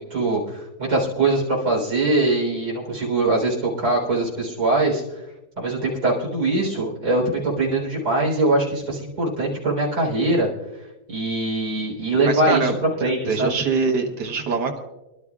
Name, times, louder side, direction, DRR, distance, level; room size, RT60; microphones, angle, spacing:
voice 1, 0.0-5.2 5.6-10.5 11.1-13.5, right 2 dB, 55° right, -4 dB, 4.3 m, -22 dB
voice 2, 12.3-12.7 13.0-14.8, right 4 dB, 85° right, 2 dB, 1.9 m, -24 dB
26.5 x 12.0 x 2.4 m, 0.98 s
omnidirectional pair, 1.8 m